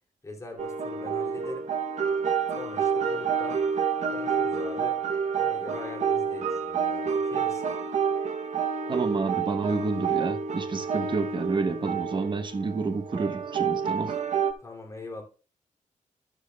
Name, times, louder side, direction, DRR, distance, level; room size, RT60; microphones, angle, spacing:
voice 1, 0.2-1.7 2.5-3.7 4.0-5.0 5.4-7.7 14.6-15.2, left 3 dB, 25° left, 2.7 m, -41 dB
sound 1, 0.6-14.5, right 6 dB, 60° right, 0.8 m, -28 dB
voice 2, 8.9-14.1, right 4 dB, 35° right, 1.0 m, -29 dB
12.0 x 12.0 x 2.3 m
wide cardioid pair, 160°, 13 cm